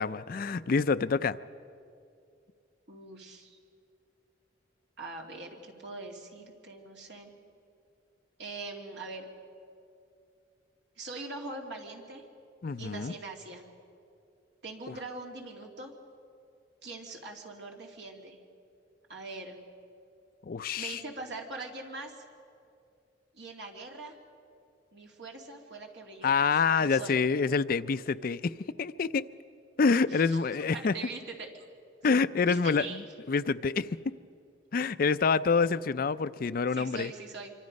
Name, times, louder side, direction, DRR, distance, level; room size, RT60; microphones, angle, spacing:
voice 1, 0.0-1.4 12.6-13.1 20.5-21.0 26.2-28.5 28.8-29.2 29.8-30.9 32.0-33.0 33.3-33.9 34.7-37.1, left 5 dB, 50° left, 14 dB, 0.4 m, -27 dB
voice 2, 2.9-3.6 5.0-7.3 8.4-9.3 11.0-12.2 12.8-13.6 14.6-15.9 16.8-18.4 19.1-19.6 20.8-22.2 23.3-24.2 24.9-26.5 26.8-27.2 30.1-30.4 30.7-31.5 32.5-33.0 36.7-37.5, right 3 dB, 65° right, 1 dB, 2.6 m, -42 dB
26.0 x 24.5 x 5.3 m, 2.5 s
head